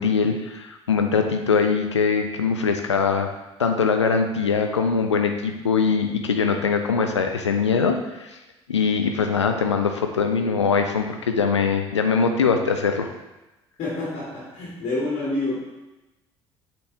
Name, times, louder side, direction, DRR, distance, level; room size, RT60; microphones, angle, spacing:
voice 1, 0.0-3.3 3.6-8.4 8.7-13.1, left 5 dB, 85° left, 5 dB, 0.4 m, -22 dB
voice 2, 13.8-15.6, left 2 dB, 50° left, -6 dB, 2.1 m, -27 dB
8.2 x 4.3 x 2.8 m, 1.0 s
figure-of-eight pair, 60°, 15 cm